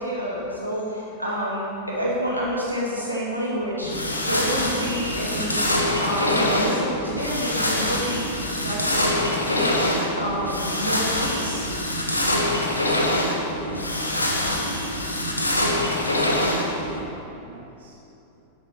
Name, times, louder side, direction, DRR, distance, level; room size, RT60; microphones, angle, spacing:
voice 1, 0.0-4.0 4.3-5.6 6.0-8.3 8.6-9.1 9.4-11.7, equal, 90° right, -6 dB, 2.4 m, -28 dB
sound 1, 3.8-17.0, left 1 dB, 85° left, 1.0 m, -24 dB
voice 2, 13.4-14.0 15.4-18.0, right 4 dB, 65° right, 0 dB, 0.7 m, -47 dB
10.5 x 8.2 x 4.6 m, 2.9 s
figure-of-eight pair, 90°, 0 cm